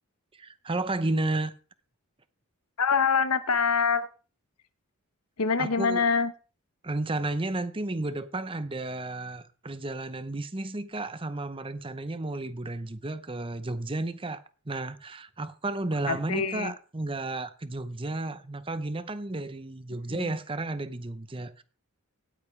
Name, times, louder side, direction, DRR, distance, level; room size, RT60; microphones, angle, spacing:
voice 1, 0.4-1.5 5.6-6.0 6.8-21.6, right 2 dB, 25° right, 0.7 m, -32 dB
voice 2, 2.8-4.1 5.4-6.3 16.1-16.7 20.1-20.4, left 5 dB, 85° left, 1.0 m, -25 dB
17.5 x 8.3 x 3.3 m
head